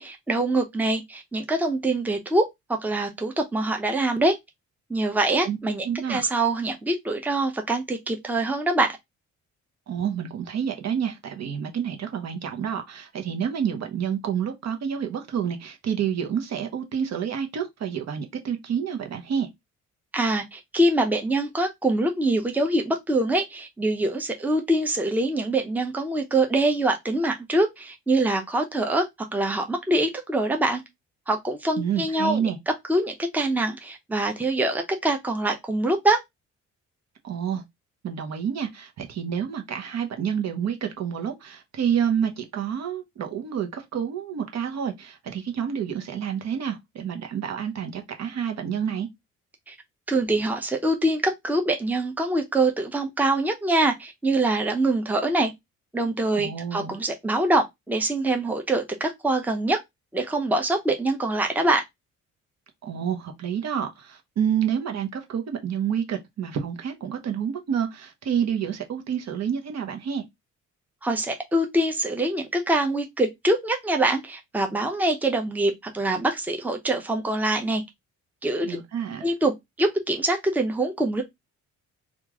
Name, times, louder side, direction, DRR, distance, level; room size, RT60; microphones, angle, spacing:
voice 1, 0.0-4.4 4.9-9.0 20.1-29.1 29.3-30.8 31.3-32.4 32.9-36.2 49.7-49.8 50.1-55.5 55.9-59.8 60.1-61.8 71.0-77.8 78.4-78.8 79.2-81.2, right 2 dB, 5° right, 0.7 m, -24 dB
voice 2, 5.8-6.3 9.9-19.5 31.8-32.6 37.2-37.6 38.0-49.1 56.3-56.9 62.8-70.2 78.6-79.3, right 8 dB, 60° right, 0.9 m, -28 dB
3.0 x 2.5 x 3.5 m
cardioid pair, 90°, 30 cm